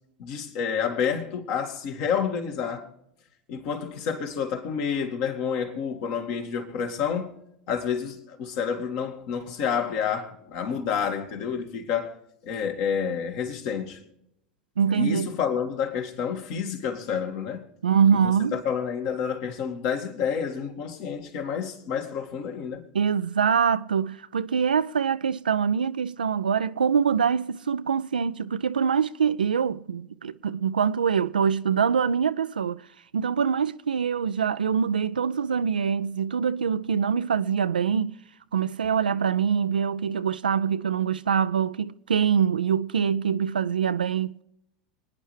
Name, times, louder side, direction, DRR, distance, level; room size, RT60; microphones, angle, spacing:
voice 1, 0.2-2.9 3.5-12.2 12.4-14.0 14.9-17.6 18.1-18.2 18.5-22.8, left 7 dB, 55° left, 2.2 m, -29 dB
voice 2, 14.8-15.3 17.8-18.6 22.9-32.8 33.1-38.1 38.5-44.4, right 7 dB, 85° right, 0.4 m, -24 dB
26.0 x 9.7 x 3.3 m
hypercardioid pair, 85°, 5 cm